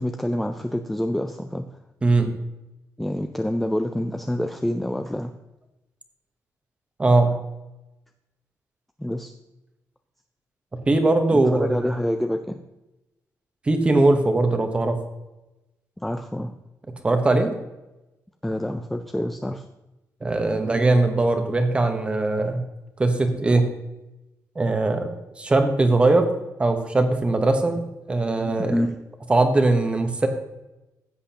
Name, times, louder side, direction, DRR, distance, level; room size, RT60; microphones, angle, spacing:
voice 1, 0.0-1.7 3.0-5.3 9.0-9.3 11.5-12.6 16.0-16.5 18.4-19.7 28.7-29.0, left 1 dB, 5° left, 6 dB, 0.4 m, -27 dB
voice 2, 2.0-2.3 7.0-7.3 10.9-11.9 13.7-15.0 17.0-17.5 20.2-22.6 23.0-23.6 24.6-26.3 26.6-27.8 28.1-28.8 29.3-30.3, right 2 dB, 15° right, 6 dB, 1.0 m, -20 dB
15.5 x 8.0 x 2.9 m, 0.98 s
wide cardioid pair, 170°, 6 cm